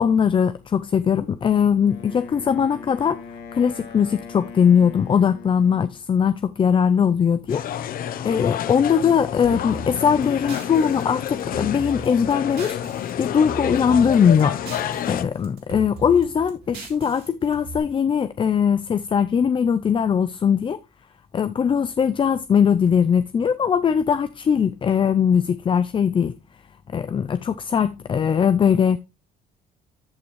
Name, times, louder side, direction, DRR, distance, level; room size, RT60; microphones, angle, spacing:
voice 1, 0.0-3.2 3.5-7.6 8.2-12.8 13.2-14.5 15.1-20.8 21.3-26.3 26.9-29.0, left 7 dB, 30° left, 0.5 m, -20 dB
Wind instrument woodwind instrument, 1.9-6.0, left 5 dB, 85° left, 2.2 m, -40 dB
sound 1, 7.5-15.2, left 10 dB, 60° left, 0.8 m, -29 dB
sound 2, 9.4-13.1 13.4-15.2 15.4-17.8, right 2 dB, 70° right, 3.6 m, -38 dB
13.5 x 5.9 x 3.1 m
cardioid pair, 110°, 17 cm